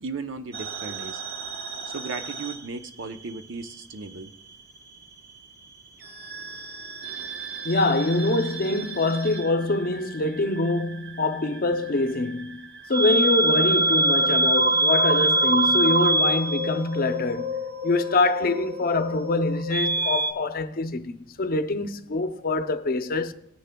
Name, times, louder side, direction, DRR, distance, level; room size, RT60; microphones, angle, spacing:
voice 1, 0.0-1.2 1.9-4.3, right 4 dB, 70° right, 0.7 m, -36 dB
sound 1, 0.5-3.4 3.6-4.8 6.0-20.3, right 2 dB, 55° right, 1.1 m, -26 dB
voice 2, 7.6-17.5 17.8-23.3, left 2 dB, 50° left, 0.6 m, -25 dB
18.5 x 10.0 x 2.3 m
head